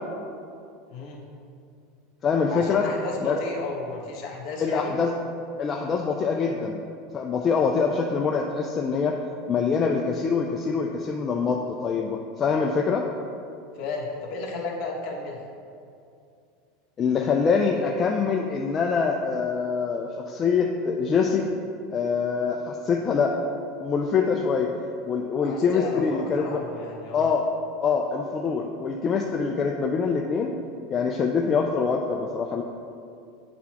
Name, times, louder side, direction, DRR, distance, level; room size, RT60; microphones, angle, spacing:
voice 1, 0.9-1.2 2.5-4.9 13.7-15.4 25.4-27.2, left 3 dB, 50° left, -2 dB, 1.2 m, -33 dB
voice 2, 2.2-2.9 3.2-3.4 4.6-5.1 5.6-6.8 7.1-9.2 9.5-13.0 17.0-21.5 21.9-23.3 23.8-24.7 25.1-26.6 27.1-27.5 27.8-30.5 30.9-32.6, left 5 dB, 25° left, 1 dB, 0.3 m, -24 dB
9.4 x 4.1 x 2.9 m, 2.4 s
supercardioid pair, 150°, 0 cm